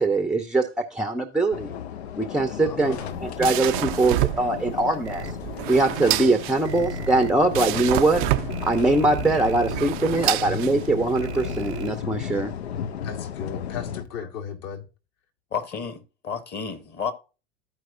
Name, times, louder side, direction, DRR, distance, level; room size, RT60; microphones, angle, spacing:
voice 1, 0.0-1.7 2.2-5.3 5.7-8.2 8.6-12.5, right 2 dB, ahead, 0.6 m, -22 dB
sound 1, 1.5-14.0, left 8 dB, 75° left, 0.5 m, -34 dB
voice 2, 2.6-3.2 10.3-10.4 13.0-14.9, left 7 dB, 50° left, 1.5 m, -36 dB
sound 2, 2.8-11.2, right 17 dB, 50° right, 0.4 m, -29 dB
sound 3, 5.0-5.3 6.6-7.3 8.5-9.7 11.1-11.9, right 6 dB, 80° right, 0.8 m, -36 dB
voice 3, 15.5-17.1, left 6 dB, 30° left, 1.3 m, -31 dB
14.0 x 4.7 x 2.5 m
figure-of-eight pair, 85°, 33 cm